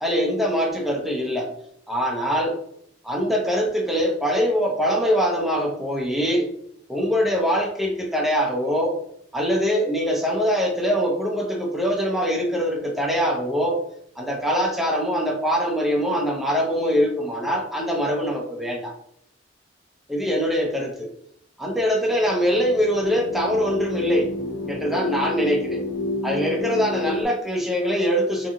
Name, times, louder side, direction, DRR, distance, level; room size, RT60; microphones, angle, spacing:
voice 1, 0.0-1.5 1.9-2.6 3.0-6.5 6.9-8.9 9.3-13.8 14.2-18.9 20.1-21.1 21.6-24.3 24.7-25.8 26.2-28.5, equal, ahead, -2 dB, 0.5 m, -23 dB
sound 1, 22.0-27.2, left 2 dB, 90° left, 0.4 m, -30 dB
2.6 x 2.4 x 2.7 m, 0.71 s
head